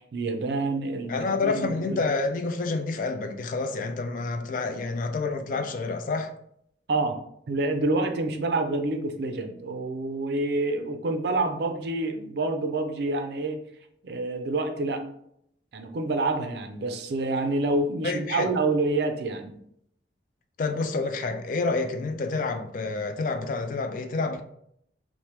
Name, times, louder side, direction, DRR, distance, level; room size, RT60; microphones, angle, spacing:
voice 1, 0.1-2.0 6.9-7.2 7.5-13.6 14.0-15.0 15.7-19.5, right 2 dB, 65° right, 0.4 m, -27 dB
voice 2, 1.1-6.3 18.0-18.5 20.6-24.4, left 3 dB, 50° left, 0.3 m, -28 dB
2.9 x 2.1 x 3.1 m
head